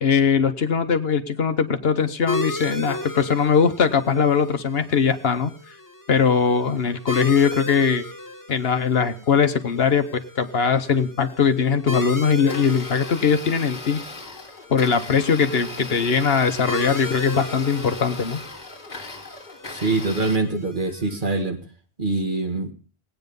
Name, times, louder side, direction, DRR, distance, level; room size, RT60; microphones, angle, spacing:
voice 1, 0.0-5.5 6.1-8.0 8.5-10.1 10.4-14.0 14.7-18.4, left 6 dB, 65° left, 9 dB, 1.2 m, -20 dB
sound 1, 2.3-21.4, left 2 dB, 20° left, 1.1 m, -36 dB
Domestic sounds home sounds, 12.4-20.4, left 3 dB, 45° left, 1.8 m, -38 dB
voice 2, 19.7-21.6 22.0-22.7, right 2 dB, 50° right, 5 dB, 1.9 m, -24 dB
19.0 x 9.2 x 5.3 m, 0.40 s
omnidirectional pair, 1.1 m